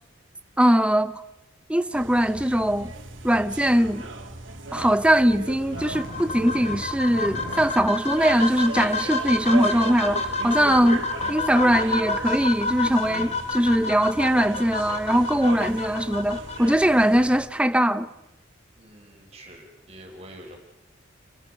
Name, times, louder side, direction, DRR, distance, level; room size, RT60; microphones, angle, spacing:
voice 1, 0.6-1.2 1.7-2.9 3.2-4.0 4.7-18.1, equal, 5° right, 0.7 m, -21 dB
sound 1, 1.9-17.5, right 2 dB, 90° right, 3.0 m, -37 dB
sound 2, 5.5-7.7 8.1-8.2 8.5-8.6 9.2-9.3 10.0-10.1 10.9-11.0, equal, 55° left, 6.0 m, -38 dB
sound 3, 5.8-16.7, left 3 dB, 35° left, 1.4 m, -30 dB
voice 2, 18.8-20.6, right 1 dB, 35° right, 4.5 m, -46 dB
29.0 x 24.0 x 5.1 m
head